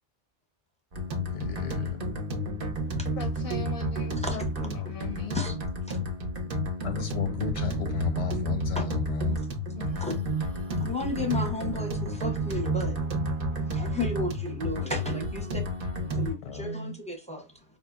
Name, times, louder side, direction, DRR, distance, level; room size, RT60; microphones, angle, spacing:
sound 1, 0.9-16.3, equal, 55° right, 0.8 m, -31 dB
voice 1, 1.3-2.1 6.8-9.4 16.4-16.9, left 6 dB, 85° left, 0.9 m, -33 dB
voice 2, 3.2-5.4 9.7-10.1, left 4 dB, 60° left, 0.6 m, -39 dB
voice 3, 10.8-13.0 13.7-15.6 16.1-17.6, left 2 dB, 10° left, 0.5 m, -33 dB
5.2 x 2.1 x 2.2 m
omnidirectional pair, 1.2 m